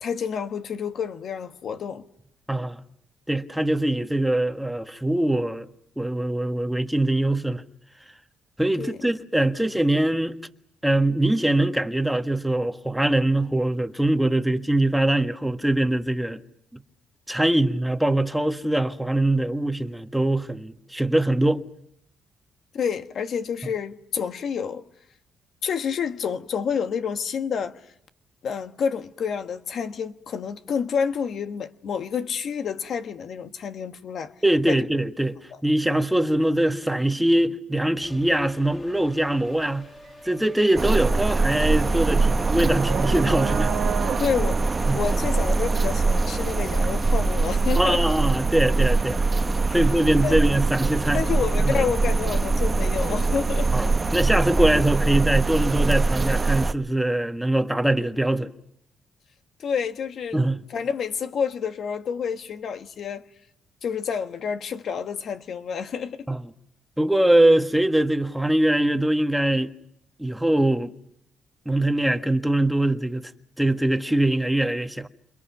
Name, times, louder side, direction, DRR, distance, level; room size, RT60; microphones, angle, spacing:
voice 1, 0.0-2.1 8.8-9.0 22.7-24.8 25.6-27.8 28.4-34.3 34.7-34.8 44.2-44.6 44.9-48.2 49.7-49.8 50.2-50.4 51.1-53.7 59.6-60.4 60.7-63.3 63.8-66.3, left 6 dB, 60° left, 1.3 m, -29 dB
voice 2, 2.5-2.8 3.3-5.6 6.0-7.6 8.6-10.4 10.8-16.4 17.3-21.6 34.4-35.4 35.6-39.9 40.2-43.7 44.9-45.0 47.8-49.2 49.7-51.2 51.6-51.9 53.7-58.5 60.3-60.6 66.3-66.4 67.0-69.7 70.2-70.9 71.6-73.3 73.6-75.1, right 1 dB, 5° right, 1.5 m, -22 dB
sound 1, 38.0-54.3, left 2 dB, 35° left, 7.4 m, -49 dB
sound 2, 39.5-39.7 40.1-47.1, right 9 dB, 75° right, 1.4 m, -34 dB
sound 3, 40.8-56.7, right 3 dB, 30° right, 1.0 m, -23 dB
29.0 x 28.5 x 5.9 m
cardioid pair, 90°, 0 cm